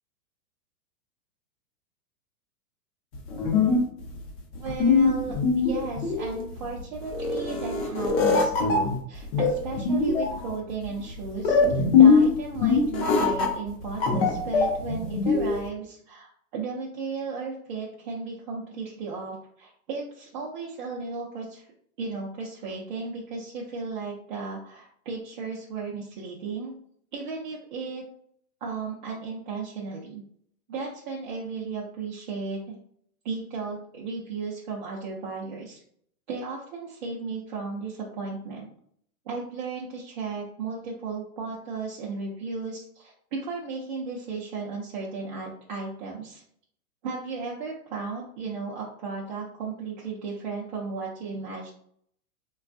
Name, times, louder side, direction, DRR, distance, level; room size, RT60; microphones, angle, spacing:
sound 1, 3.1-15.7, left 4 dB, 40° left, 0.7 m, -22 dB
voice 1, 4.6-21.6 22.0-26.7 27.1-28.0 28.6-30.2 30.7-32.8 33.2-35.8 36.3-38.7 39.3-46.4 47.0-51.7, right 4 dB, 35° right, -4 dB, 0.4 m, -35 dB
3.2 x 2.3 x 2.5 m, 0.65 s
hypercardioid pair, 150°, 44 cm